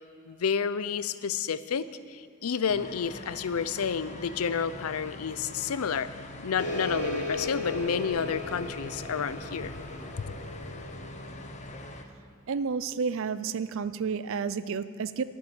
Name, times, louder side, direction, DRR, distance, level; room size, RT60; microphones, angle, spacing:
voice 1, 0.3-6.2 6.4-9.8 10.2-10.3, left 6 dB, 80° left, 14 dB, 0.5 m, -30 dB
sound 1, 2.7-12.0, left 1 dB, 35° left, 0.9 m, -44 dB
sound 2, 6.6-11.7, left 2 dB, 60° left, 2.8 m, -36 dB
voice 2, 12.5-15.2, right 5 dB, 65° right, 15 dB, 0.5 m, -31 dB
11.5 x 7.3 x 9.8 m, 2.6 s
head